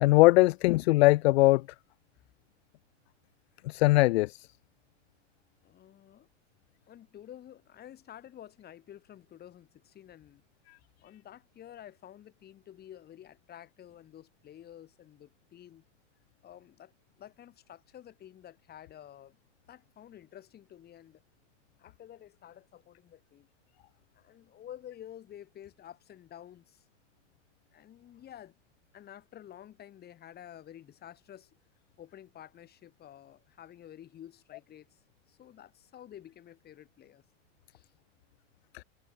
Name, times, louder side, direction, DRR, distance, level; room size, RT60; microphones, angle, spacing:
voice 1, 0.0-1.6 3.6-4.5 38.7-38.8, left 20 dB, 60° left, 0.5 m, -21 dB
voice 2, 5.6-6.3 6.9-10.4 11.0-15.8 16.4-16.9 17.2-19.4 19.7-21.2 21.8-23.5 24.1-26.8 27.7-28.6 28.9-31.5 32.0-35.0 35.3-37.2 37.7-37.9, left 11 dB, 25° left, 6.2 m, -50 dB
supercardioid pair, 140°, 37 cm